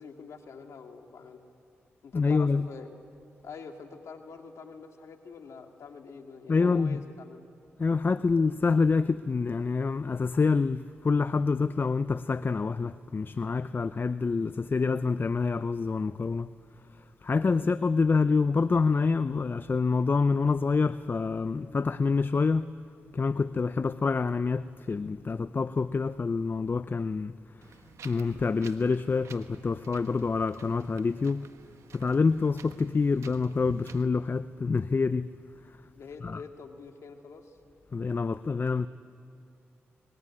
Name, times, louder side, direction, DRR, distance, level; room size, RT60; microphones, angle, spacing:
voice 1, 0.0-1.4 2.0-2.9 3.4-7.4 17.4-17.8 36.0-37.6, left 5 dB, 75° left, 2.1 m, -46 dB
voice 2, 2.1-2.6 6.5-7.0 7.8-16.5 17.2-22.7 23.1-27.3 28.0-31.5 31.9-35.3 36.2-36.4 37.9-38.9, left 4 dB, 45° left, 0.6 m, -27 dB
Wind, 27.6-34.0, right 6 dB, 75° right, 1.2 m, -51 dB
22.5 x 20.5 x 9.7 m
supercardioid pair, 45°, 5 cm